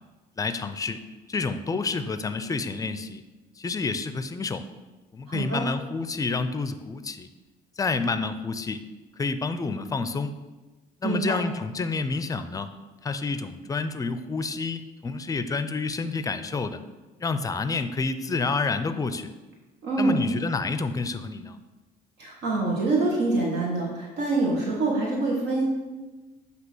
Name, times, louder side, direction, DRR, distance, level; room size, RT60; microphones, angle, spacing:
voice 1, 0.4-1.0 1.3-3.2 3.6-4.6 5.1-7.3 7.8-8.8 9.2-10.4 11.0-12.7 13.0-16.8 17.2-19.3 20.0-21.6, left 4 dB, 20° left, 10 dB, 0.4 m, -29 dB
voice 2, 5.3-5.6 11.0-11.4 19.8-20.2 22.2-25.6, right 2 dB, 80° right, -3 dB, 1.4 m, -25 dB
8.0 x 2.9 x 6.0 m, 1.2 s
cardioid pair, 110°, 17 cm